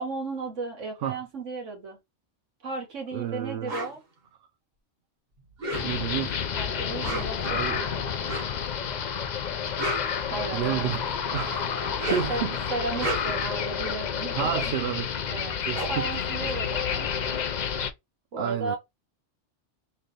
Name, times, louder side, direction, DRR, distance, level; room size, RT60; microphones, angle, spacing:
voice 1, 0.0-2.0 2.6-4.0 6.5-8.1 10.3-11.0 12.1-14.5 15.3-17.4 18.3-18.8, right 3 dB, 85° right, 1.8 m, -35 dB
voice 2, 3.1-3.7 5.8-6.4 7.4-7.8 10.3-12.7 13.0-13.1 14.3-15.1 15.7-16.1 18.4-18.8, right 10 dB, 65° right, 0.7 m, -31 dB
sound 1, 3.7-3.9 5.5-6.2 6.9-7.5 8.2-8.6 9.5-10.8 11.8-12.4 12.8-13.5 15.1-15.2 15.4-17.1, right 1 dB, 40° right, 1.1 m, -34 dB
sound 2, 5.7-17.9, left 7 dB, 55° left, 0.5 m, -30 dB
3.3 x 2.8 x 3.8 m
omnidirectional pair, 1.2 m